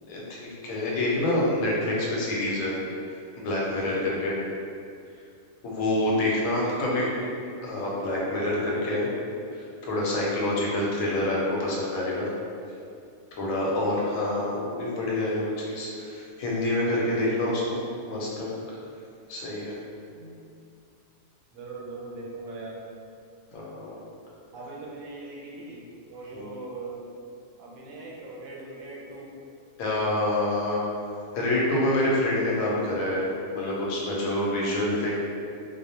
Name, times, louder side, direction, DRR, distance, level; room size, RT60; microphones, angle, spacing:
voice 1, 0.0-2.7 3.4-4.4 5.6-7.1 7.6-9.1 9.5-12.3 13.4-18.5 19.3-19.7 23.5-24.0 26.3-26.5 29.8-30.8 31.3-35.2, left 1 dB, 85° left, -4 dB, 1.0 m, -27 dB
voice 2, 6.5-7.3 13.5-14.2 18.6-18.7 20.1-20.4 21.5-22.8 24.5-27.0 27.6-29.3, right 3 dB, 85° right, -4 dB, 1.0 m, -41 dB
2.3 x 2.0 x 2.7 m, 2.4 s
omnidirectional pair, 1.4 m